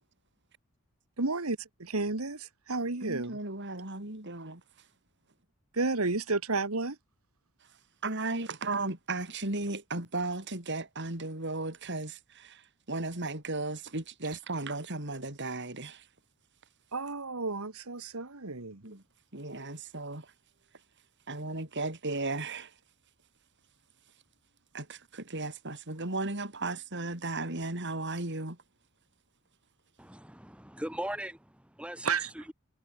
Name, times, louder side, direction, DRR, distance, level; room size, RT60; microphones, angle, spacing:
voice 1, 1.2-3.4 5.7-7.0 16.9-18.8 32.0-32.5, right 3 dB, 80° right, 1.9 m, -32 dB
voice 2, 3.0-4.6 8.0-16.1 18.8-19.0 19.3-20.3 21.3-22.7 24.7-28.6, right 2 dB, 55° right, 4.4 m, -35 dB
voice 3, 30.0-32.5, right 1 dB, 5° right, 5.3 m, -40 dB
head